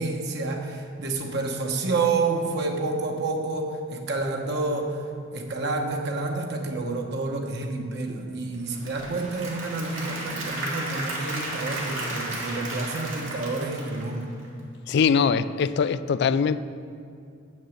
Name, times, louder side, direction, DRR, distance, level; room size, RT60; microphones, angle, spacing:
voice 1, 0.0-5.0 5.3-14.3, right 3 dB, 55° right, 2 dB, 1.0 m, -29 dB
Applause / Crowd, 8.5-14.6, right 2 dB, 80° right, 2.4 m, -34 dB
voice 2, 14.9-16.6, left 6 dB, 55° left, 15 dB, 0.3 m, -22 dB
7.9 x 6.5 x 7.1 m, 2.5 s
head